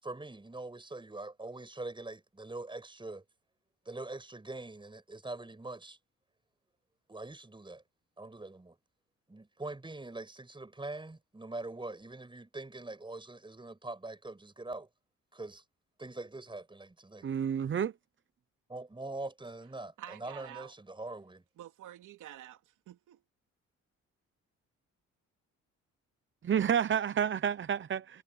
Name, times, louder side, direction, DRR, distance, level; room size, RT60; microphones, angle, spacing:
voice 1, 0.0-3.2 3.9-6.0 7.1-7.8 8.2-8.8 9.3-14.9 15.3-15.6 16.0-17.3 18.7-21.4, right 2 dB, 15° right, 7.4 m, -43 dB
voice 2, 17.2-17.9 26.4-28.2, right 8 dB, 40° right, 0.8 m, -29 dB
voice 3, 20.0-20.7 21.6-23.2, right 12 dB, 80° right, 3.1 m, -49 dB
cardioid pair, 90°, 30 cm